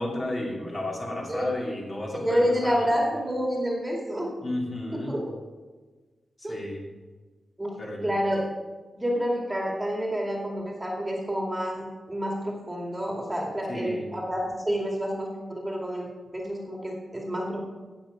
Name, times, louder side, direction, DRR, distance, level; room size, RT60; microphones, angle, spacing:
voice 1, 0.0-3.0 4.4-5.2 6.4-6.8 7.8-8.1 13.7-14.1, left 1 dB, 35° left, -2 dB, 2.8 m, -33 dB
voice 2, 2.1-4.3 5.1-5.4 6.4-6.6 7.6-8.4 9.0-16.1 16.3-17.6, equal, 10° right, -1 dB, 2.3 m, -28 dB
17.5 x 7.4 x 5.1 m, 1.3 s
wide cardioid pair, 140°, 0 cm